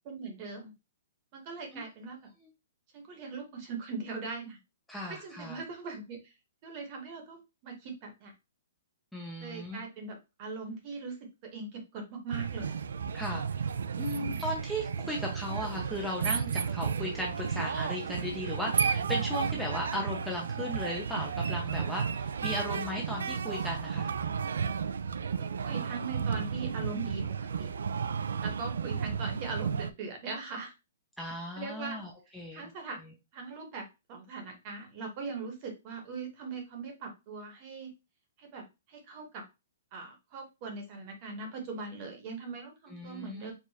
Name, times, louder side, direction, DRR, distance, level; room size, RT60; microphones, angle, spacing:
voice 1, 0.1-0.7 1.3-2.2 2.9-4.6 5.1-6.3 6.6-8.3 9.4-11.2 11.5-12.8 25.2-27.2 27.6-27.7 28.4-30.7 31.6-32.0 32.5-33.0 33.3-37.9 38.4-39.4 39.9-43.5, right 4 dB, 30° right, 4 dB, 1.0 m, -40 dB
voice 2, 4.9-5.6 9.1-9.8 13.1-13.4 14.0-24.1 31.2-32.6 42.9-43.5, left 1 dB, ahead, -2 dB, 0.6 m, -36 dB
sound 1, 12.3-29.9, right 6 dB, 85° right, 0.3 m, -33 dB
4.7 x 2.5 x 2.8 m, 0.26 s
hypercardioid pair, 165°, 0 cm